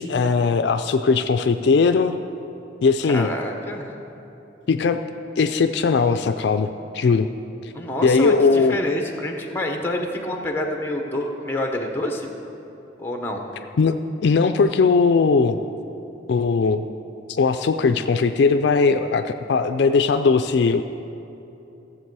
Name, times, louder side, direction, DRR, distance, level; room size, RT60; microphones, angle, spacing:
voice 1, 0.0-2.2 2.8-3.3 4.7-5.0 5.4-7.3 7.6-7.7 8.0-8.8 13.8-15.6 16.3-16.9 17.3-20.8, left 4 dB, 65° left, 8 dB, 0.3 m, -19 dB
voice 2, 3.0-3.9 7.7-12.3 13.0-13.5, left 1 dB, 10° left, 2 dB, 0.9 m, -27 dB
14.5 x 7.3 x 4.7 m, 3.0 s
head